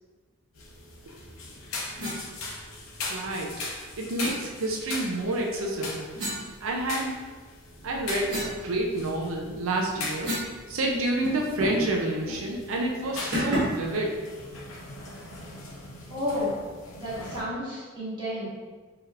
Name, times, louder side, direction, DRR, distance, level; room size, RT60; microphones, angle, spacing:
sound 1, 0.5-17.4, left 2 dB, 85° left, 0.7 m, -40 dB
sound 2, 2.0-2.2 4.2-4.4 6.2-7.2 7.7-10.6 10.8-10.9 11.2-11.9 12.3-12.4 13.3-13.9, equal, 55° right, 1.3 m, -33 dB
voice 1, 3.1-3.6 4.0-6.1 6.6-7.2 7.8-10.4 10.7-14.2, right 1 dB, 75° right, 0 dB, 0.5 m, -29 dB
voice 2, 16.1-16.5 17.0-18.5, left 1 dB, 20° right, -10 dB, 1.4 m, -31 dB
4.7 x 2.9 x 2.4 m, 1.4 s
head